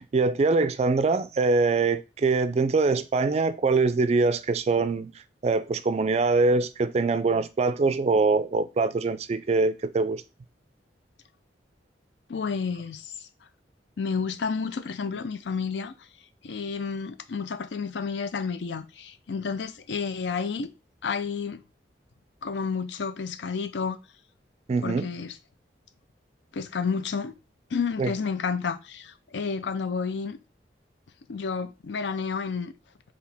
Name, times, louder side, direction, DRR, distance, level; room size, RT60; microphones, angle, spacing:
voice 1, 0.0-5.1 5.4-10.2 24.7-25.1 28.0-28.1, right 3 dB, 35° right, 0.3 m, -23 dB
voice 2, 12.3-13.3 14.0-15.9 16.4-20.7 21.0-21.6 22.4-24.0 24.8-25.4 26.5-27.3 27.7-30.4 31.3-32.7, left 5 dB, 80° left, 0.5 m, -30 dB
4.8 x 2.9 x 3.4 m
head